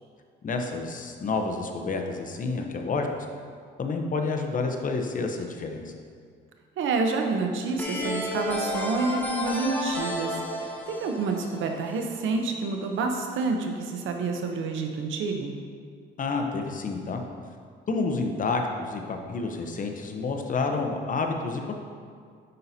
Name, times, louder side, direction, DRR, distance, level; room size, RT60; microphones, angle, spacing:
voice 1, 0.4-3.1 3.8-5.9 16.2-17.2 17.9-21.7, left 3 dB, 40° left, 4 dB, 0.8 m, -29 dB
voice 2, 6.8-15.5, right 3 dB, 80° right, 3 dB, 0.8 m, -28 dB
sound 1, 7.8-12.4, left 1 dB, 10° left, 1.1 m, -32 dB
9.2 x 5.6 x 2.8 m, 2.1 s
cardioid pair, 90°, 20 cm